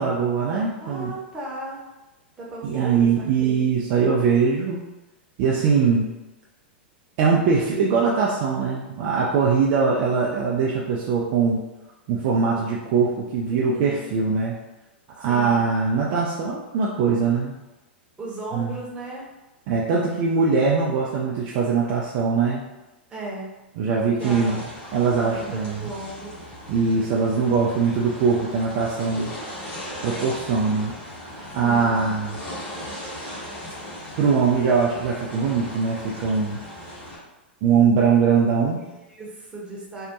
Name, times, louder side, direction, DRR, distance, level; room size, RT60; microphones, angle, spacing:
voice 1, 0.0-1.1 2.6-4.9 5.4-6.1 7.2-11.6 12.1-14.6 15.2-17.5 18.5-18.8 19.7-22.6 23.8-24.6 24.9-25.9 26.7-29.3 30.0-30.9 31.5-32.4 34.2-36.6 37.6-38.9, right 5 dB, 45° right, -4 dB, 0.4 m, -22 dB
voice 2, 0.8-1.8 2.4-3.6 13.6-14.2 15.2-15.7 18.2-19.2 23.1-23.6 24.0-24.6 25.1-26.4 31.5-32.2 39.0-40.1, right 2 dB, 15° right, -5 dB, 0.8 m, -36 dB
sound 1, 24.2-37.2, equal, 35° left, 1.3 m, -38 dB
2.6 x 2.1 x 2.5 m, 1.0 s
figure-of-eight pair, 100°, 6 cm